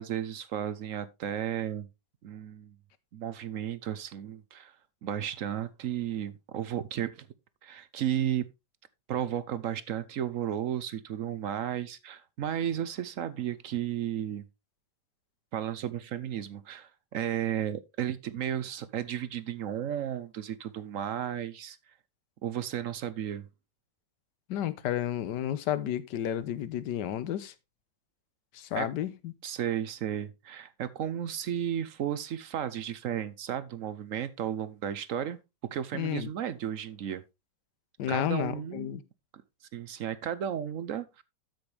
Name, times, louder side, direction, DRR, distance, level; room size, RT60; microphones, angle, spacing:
voice 1, 0.0-1.9 2.2-2.7 3.1-4.7 5.0-7.3 7.6-8.4 9.1-14.4 15.5-21.8 22.4-23.5 28.7-28.9 29.4-35.4 35.7-37.2 38.1-38.9 39.7-41.2, right 10 dB, 60° right, 0.8 m, -33 dB
voice 2, 24.5-27.5 28.5-29.3 35.9-36.3 38.0-39.0, left 11 dB, 75° left, 1.4 m, -31 dB
13.0 x 6.1 x 3.3 m
omnidirectional pair, 1.9 m